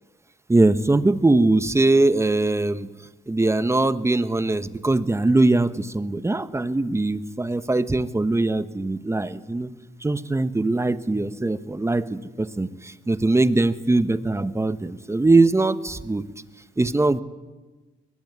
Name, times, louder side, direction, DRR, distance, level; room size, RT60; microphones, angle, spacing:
voice 1, 0.5-2.9 3.3-9.7 10.0-16.3 16.8-17.2, right 2 dB, 15° right, 13 dB, 1.2 m, -21 dB
22.0 x 20.0 x 9.7 m, 1.2 s
cardioid pair, 90°, 20 cm